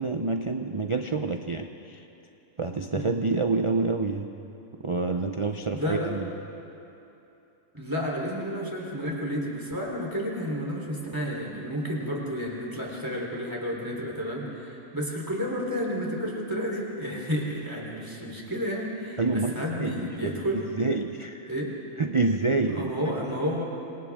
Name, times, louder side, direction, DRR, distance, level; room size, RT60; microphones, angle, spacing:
voice 1, 0.0-2.0 2.6-4.3 4.8-6.3 19.2-21.5 22.0-23.1, right 3 dB, 40° right, 5 dB, 0.4 m, -28 dB
voice 2, 5.7-6.1 7.7-20.7 21.5-21.7 22.6-23.6, equal, 15° right, -3 dB, 3.6 m, -31 dB
27.0 x 26.0 x 3.6 m, 2.9 s
omnidirectional pair, 1.5 m